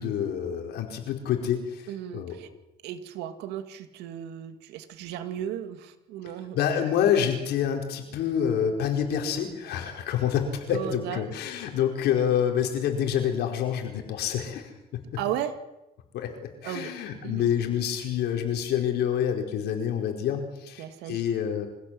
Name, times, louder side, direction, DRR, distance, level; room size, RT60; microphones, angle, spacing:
voice 1, 0.0-2.3 6.5-14.7 16.1-16.3 16.6-21.7, left 9 dB, 75° left, 3 dB, 4.9 m, -27 dB
voice 2, 1.9-2.5 2.8-6.6 10.7-11.3 15.2-15.6 16.6-16.9 17.2-17.4 20.8-21.2, right 10 dB, 90° right, 9 dB, 2.3 m, -35 dB
25.0 x 16.5 x 7.8 m, 0.93 s
cardioid pair, 110°, 17 cm